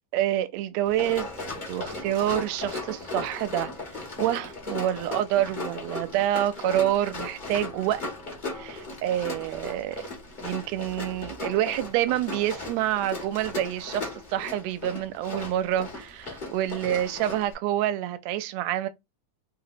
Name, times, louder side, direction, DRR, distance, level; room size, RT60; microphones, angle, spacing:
voice 1, 0.1-1.3 1.7-3.7 4.2-8.0 8.5-10.0 10.4-18.9, right 12 dB, 80° right, 1.6 m, -27 dB
Run, 0.8-17.5, left 2 dB, 40° left, 0.6 m, -37 dB
5.0 x 2.9 x 2.6 m
omnidirectional pair, 3.6 m